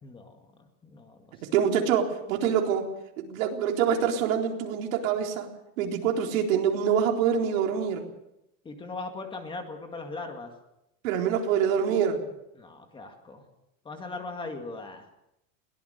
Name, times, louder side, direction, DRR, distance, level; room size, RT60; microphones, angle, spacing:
voice 1, 0.0-1.3 8.6-10.5 12.6-13.4 13.9-15.1, left 3 dB, 10° left, 4 dB, 1.9 m, -39 dB
voice 2, 1.4-5.5 5.8-8.0 11.0-12.2, right 8 dB, 75° right, 2 dB, 4.0 m, -25 dB
22.0 x 18.0 x 6.7 m, 0.86 s
supercardioid pair, 175°, 40 cm